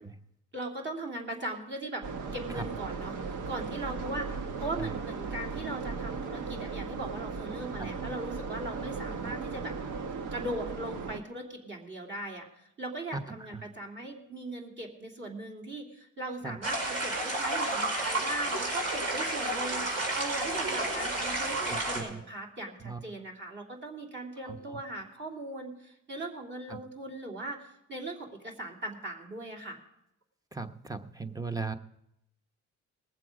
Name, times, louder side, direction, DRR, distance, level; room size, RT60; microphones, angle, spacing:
voice 1, 0.5-2.0 2.3-9.7 10.3-29.8, right 1 dB, 40° right, 0 dB, 2.9 m, -39 dB
sound 1, 2.0-11.2, right 4 dB, 75° right, 1.1 m, -37 dB
sound 2, 16.6-22.0, right 2 dB, 55° right, 4.8 m, -31 dB
voice 2, 30.6-31.7, right 4 dB, 10° right, 9 dB, 0.9 m, -36 dB
20.0 x 7.6 x 4.9 m, 0.81 s
cardioid pair, 90°, 30 cm